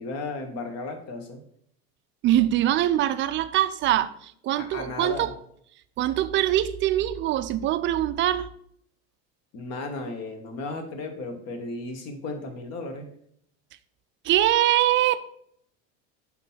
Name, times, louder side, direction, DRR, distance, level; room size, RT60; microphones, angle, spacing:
voice 1, 0.0-1.4 4.6-5.3 9.5-13.1, left 3 dB, 50° left, 1.5 m, -35 dB
voice 2, 2.2-5.3 6.0-8.5 14.2-15.2, right 13 dB, 35° right, 0.4 m, -23 dB
6.1 x 3.8 x 5.6 m
supercardioid pair, 125°, 33 cm